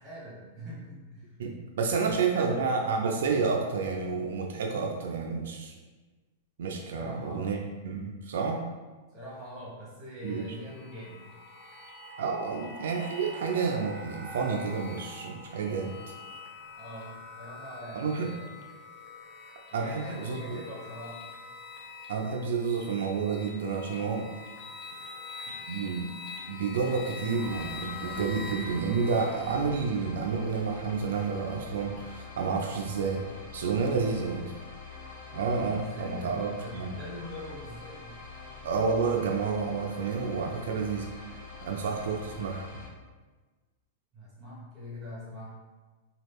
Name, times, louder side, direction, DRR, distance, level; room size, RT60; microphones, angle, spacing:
voice 1, 0.0-1.3 1.8-2.6 6.9-7.6 9.1-11.2 16.8-18.6 19.7-21.2 33.8-34.4 35.7-38.2 44.1-45.6, equal, 10° right, -8 dB, 1.2 m, -43 dB
voice 2, 1.4-5.7 6.6-7.6 7.8-8.6 10.2-10.4 12.2-15.9 17.9-18.3 19.7-20.6 22.1-24.3 25.7-33.3 33.5-34.5 35.3-36.9 38.6-41.1 41.6-42.8, right 5 dB, 75° right, 1 dB, 0.4 m, -30 dB
sound 1, 10.2-29.5, left 4 dB, 35° left, 0.5 m, -45 dB
sound 2, 10.5-17.6, right 3 dB, 10° left, 0.9 m, -49 dB
sound 3, 27.4-42.9, left 4 dB, 65° left, 1.2 m, -46 dB
3.0 x 2.3 x 3.3 m, 1.3 s
supercardioid pair, 170°, 0 cm